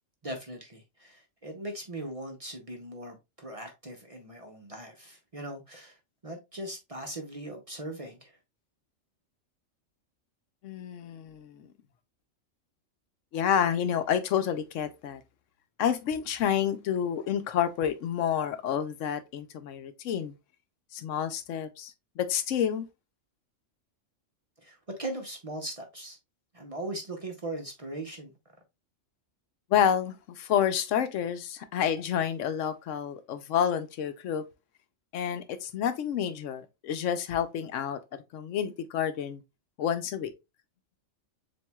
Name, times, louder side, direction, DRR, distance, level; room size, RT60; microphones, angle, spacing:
voice 1, 0.2-6.0 6.2-8.4 24.6-26.2 26.5-28.3, right 1 dB, 35° right, 0.7 m, -39 dB
voice 2, 10.6-11.7 13.3-15.2 15.8-20.3 20.9-22.9 29.7-34.4 35.1-38.0 38.3-39.4 39.8-40.3, left 9 dB, 75° left, 0.9 m, -29 dB
7.1 x 2.7 x 2.3 m
omnidirectional pair, 1.3 m